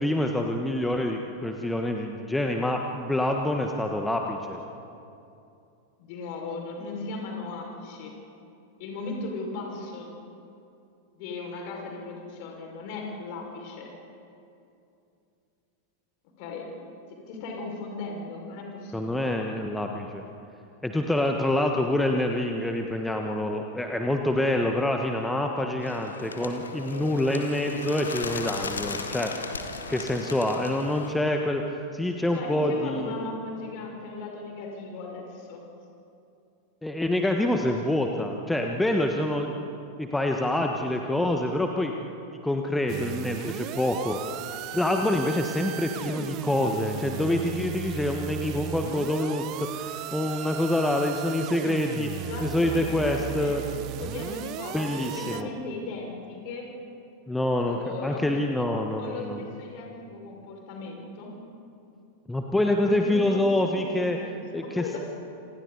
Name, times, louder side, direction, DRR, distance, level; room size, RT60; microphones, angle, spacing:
voice 1, 0.0-4.6 18.9-20.2 20.8-29.3 29.9-31.6 31.9-33.3 36.8-39.7 40.0-41.9 42.4-44.2 44.7-52.1 52.4-53.6 54.7-55.5 57.3-59.4 62.3-64.2 64.5-65.0, left 1 dB, 5° left, 3 dB, 1.3 m, -26 dB
voice 2, 6.0-8.1 8.8-10.2 11.1-13.9 16.4-16.7 17.1-19.3 32.3-35.7 52.3-56.7 57.6-58.3 59.0-61.3 62.9-65.0, left 3 dB, 45° left, 0 dB, 5.6 m, -37 dB
Bird, 25.8-31.1, left 4 dB, 75° left, 1.6 m, -36 dB
sound 1, 42.9-55.4, right 12 dB, 40° right, 0.8 m, -36 dB
27.5 x 27.0 x 4.1 m, 2.6 s
figure-of-eight pair, 90°, 0 cm